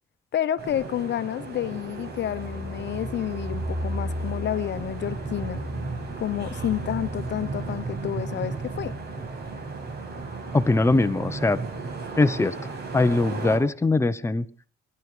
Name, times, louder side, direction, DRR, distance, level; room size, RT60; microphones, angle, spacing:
voice 1, 0.3-5.6 6.2-8.9, left 11 dB, 65° left, 0.9 m, -29 dB
sound 1, 0.6-13.6, right 4 dB, 55° right, 7.1 m, -35 dB
sound 2, 1.4-11.0 11.3-11.4 11.6-12.1, equal, 75° right, 7.2 m, -37 dB
voice 2, 10.5-11.6 12.2-12.6 12.9-14.5, left 2 dB, 15° left, 0.8 m, -21 dB
21.0 x 11.0 x 5.0 m
cardioid pair, 90°, 20 cm